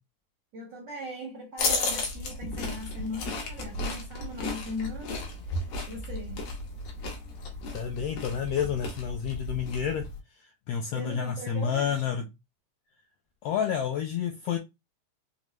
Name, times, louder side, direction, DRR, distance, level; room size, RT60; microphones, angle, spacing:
voice 1, 0.5-5.3 5.6-6.4 10.9-12.1, left 1 dB, 75° right, 1.0 m, -39 dB
sound 1, 1.6-10.2, left 2 dB, 65° left, 2.1 m, -34 dB
voice 2, 7.7-10.1 10.7-12.2 13.4-14.6, left 8 dB, 80° left, 1.4 m, -29 dB
5.1 x 2.2 x 3.0 m
omnidirectional pair, 3.3 m